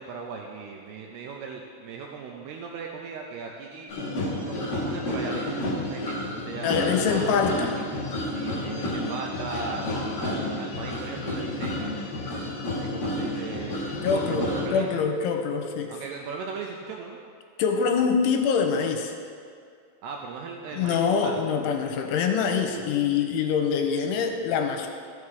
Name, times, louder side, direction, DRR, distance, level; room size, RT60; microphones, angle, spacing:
voice 1, 0.0-3.9 4.4-6.8 8.3-12.2 12.8-15.0 15.9-17.2 20.0-21.4, right 5 dB, 85° right, 1 dB, 2.3 m, -38 dB
sound 1, 3.9-14.7, left 1 dB, 50° left, 1.8 m, -30 dB
voice 2, 6.6-7.7 14.0-14.4 14.7-15.9 17.6-19.1 20.7-24.9, left 6 dB, 85° left, 3 dB, 3.2 m, -24 dB
14.0 x 7.1 x 4.8 m, 2.2 s
omnidirectional pair, 5.5 m